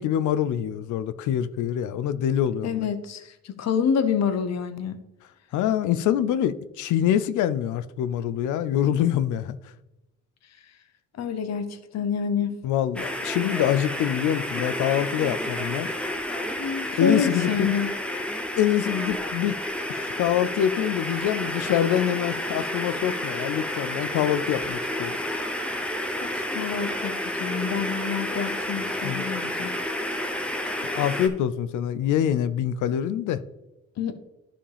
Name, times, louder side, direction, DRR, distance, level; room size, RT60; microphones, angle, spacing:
voice 1, 0.0-2.9 5.5-9.6 12.6-15.9 17.0-17.7 18.6-19.6 19.9-25.2 29.0-29.2 30.9-33.4, left 10 dB, 80° left, 0.5 m, -25 dB
voice 2, 2.6-5.0 11.2-12.6 16.6-17.9 26.2-27.1 27.4-29.7 34.0-34.1, left 6 dB, 60° left, 0.8 m, -27 dB
sound 1, 13.0-31.3, left 1 dB, 5° left, 0.8 m, -30 dB
11.0 x 5.0 x 3.4 m
cardioid pair, 90°, 30 cm